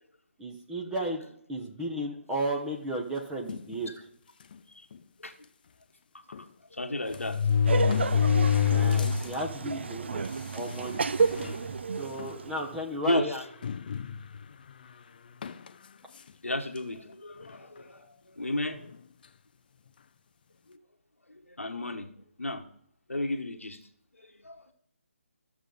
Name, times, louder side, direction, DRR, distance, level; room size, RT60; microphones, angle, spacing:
voice 1, 0.4-1.2 1.5-3.9 8.7-10.2 10.5-11.0 12.0-13.4, right 1 dB, 5° right, -1 dB, 1.0 m, -34 dB
sound 1, 3.5-3.8 4.5-4.6 4.9-5.0 6.3-6.4 7.1-9.4 9.8-9.9 10.7-10.8 11.2-11.6 12.2-12.3 13.6-14.4 15.4-15.7, left 7 dB, 40° left, 0.5 m, -26 dB
voice 2, 6.7-7.6 12.9-13.4 16.4-18.9 20.7-20.8 21.3-22.1 22.4-22.7 23.1-23.8 24.2-24.7, left 2 dB, 90° left, 4 dB, 1.2 m, -34 dB
Laughter, 7.7-12.7, right 5 dB, 60° right, 0.5 m, -31 dB
14.0 x 6.9 x 3.9 m, 0.73 s
figure-of-eight pair, 150°, 7 cm